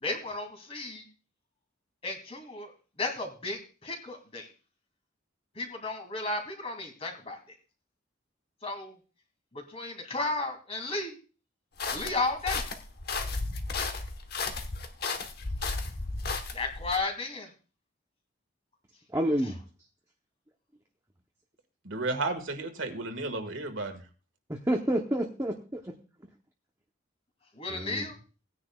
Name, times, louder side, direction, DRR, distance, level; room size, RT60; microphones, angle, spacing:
voice 1, 0.0-1.1 2.0-2.7 3.0-4.5 5.6-7.6 8.6-8.9 9.5-11.2 11.9-12.7 16.5-17.5 27.5-28.2, left 3 dB, 30° left, 3 dB, 2.3 m, -34 dB
sound 1, 11.8-17.0, left 3 dB, 50° left, 1.1 m, -34 dB
voice 2, 19.1-19.6 24.5-25.9 27.7-28.1, right 1 dB, 15° right, 2 dB, 0.8 m, -29 dB
voice 3, 21.8-24.0, right 2 dB, 75° right, 6 dB, 1.7 m, -33 dB
18.0 x 9.9 x 2.3 m, 0.36 s
head